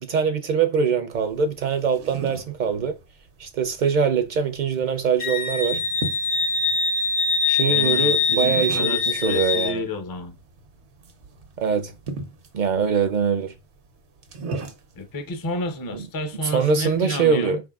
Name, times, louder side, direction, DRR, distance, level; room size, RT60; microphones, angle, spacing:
voice 1, 0.0-3.0 3.4-5.8 7.5-9.8 11.6-11.9 12.5-13.5 15.9-16.1 16.4-17.6, right 6 dB, 55° right, 0.5 m, -23 dB
sound 1, 1.1-17.0, right 3 dB, 90° right, 1.0 m, -40 dB
Wind instrument woodwind instrument, 5.2-9.8, left 4 dB, 75° left, 1.0 m, -23 dB
voice 2, 7.7-10.4 15.0-17.6, left 1 dB, 30° left, 0.4 m, -31 dB
4.7 x 3.7 x 2.3 m
omnidirectional pair, 1.1 m